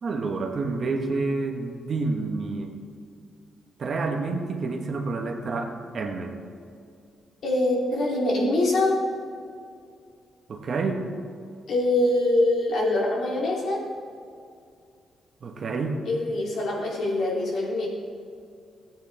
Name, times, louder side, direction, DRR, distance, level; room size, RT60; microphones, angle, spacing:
voice 1, 0.0-2.7 3.8-6.4 10.5-11.1 15.4-16.0, right 3 dB, 55° right, 3 dB, 1.3 m, -29 dB
voice 2, 7.4-9.0 11.7-13.8 16.0-17.9, left 2 dB, 70° left, -4 dB, 3.0 m, -24 dB
15.0 x 9.1 x 3.5 m, 2.3 s
cardioid pair, 75°, 0 cm